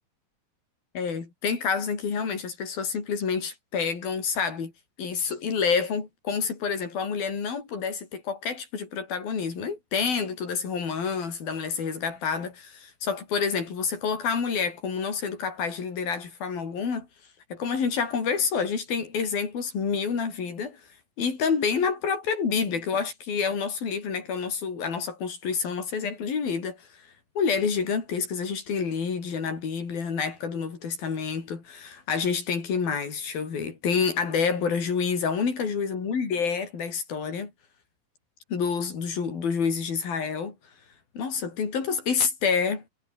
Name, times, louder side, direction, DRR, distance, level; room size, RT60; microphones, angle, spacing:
voice 1, 0.9-4.7 5.0-17.1 17.5-20.8 21.2-26.8 27.4-37.5 38.5-40.6 41.1-42.8, left 6 dB, 70° left, 6.7 m, -28 dB
omnidirectional pair, 4.3 m